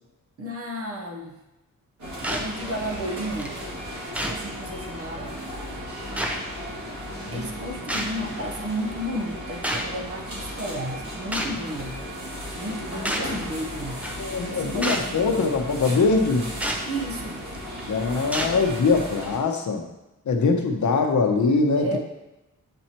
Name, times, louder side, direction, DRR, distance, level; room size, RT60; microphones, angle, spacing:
voice 1, 0.4-1.4 2.3-3.5 4.2-5.4 7.3-12.0 12.5-14.1 14.5-15.5 16.8-17.4 21.8-22.0, right 1 dB, 45° right, 2 dB, 0.8 m, -33 dB
sound 1, 2.0-19.4, equal, 60° right, 1.9 m, -35 dB
sound 2, 2.2-2.5 3.4-3.5 4.1-4.4 5.4-5.5 6.2-6.4 7.9-8.2 9.6-9.9 11.3-11.6 13.0-13.3 14.0-14.2 14.8-15.1 16.6-16.8 17.5-17.8 18.3-18.6 19.2-19.3, equal, 5° right, 0.4 m, -28 dB
voice 2, 7.1-7.4 14.2-16.5 17.9-19.9 20.3-22.0, left 4 dB, 60° left, 3 dB, 0.7 m, -22 dB
7.7 x 4.3 x 2.9 m, 0.98 s
wide cardioid pair, 160°, 33 cm